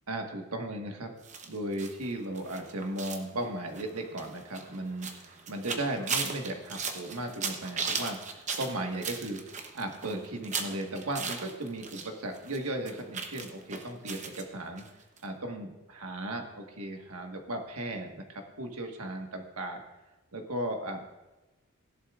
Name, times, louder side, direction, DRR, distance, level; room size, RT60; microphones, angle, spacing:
voice 1, 0.1-1.1 1.4-14.9 15.2-19.8 20.3-21.0, right 1 dB, 90° right, 3 dB, 1.6 m, -36 dB
sound 1, 1.2-12.1 12.3-14.4 14.8-14.9 15.2-15.3, right 5 dB, 35° right, 0.9 m, -37 dB
16.5 x 11.0 x 2.5 m, 1.1 s
head